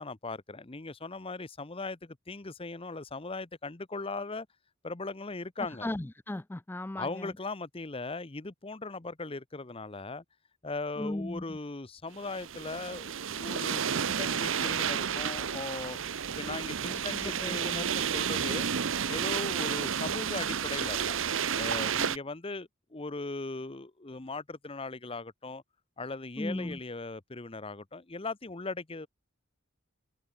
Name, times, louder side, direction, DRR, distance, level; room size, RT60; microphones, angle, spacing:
voice 1, 0.0-4.5 4.8-5.9 7.0-10.2 10.6-16.0 16.4-18.7 19.1-21.2 21.6-25.6 26.0-29.1, left 3 dB, 25° left, 0.9 m, -39 dB
voice 2, 5.8-7.3 11.0-11.6 16.9-17.9 26.4-26.8, left 1 dB, 10° left, 0.3 m, -37 dB
sound 1, 12.2-22.2, right 7 dB, 65° right, 0.8 m, -31 dB
head